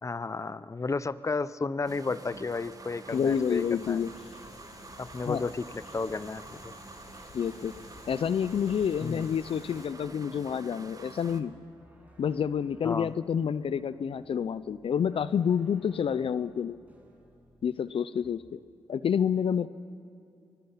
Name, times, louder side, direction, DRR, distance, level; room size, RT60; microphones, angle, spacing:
voice 1, 0.0-4.0 5.0-6.7 9.0-9.3 12.8-13.1, left 4 dB, 30° left, 16 dB, 0.7 m, -33 dB
sound 1, 1.9-11.4, right 3 dB, 35° right, 1.7 m, -48 dB
sound 2, 2.2-17.9 18.2-18.7, right 1 dB, 15° right, 6.2 m, -60 dB
sound 3, 3.1-9.9, left 5 dB, 80° left, 2.0 m, -52 dB
voice 2, 3.1-4.1 5.3-5.4 7.3-7.7 8.1-11.6 12.2-16.8 17.6-18.6 18.9-19.7, left 7 dB, 65° left, 15 dB, 0.6 m, -28 dB
25.0 x 20.0 x 5.8 m, 2.6 s
cardioid pair, 50°, 10 cm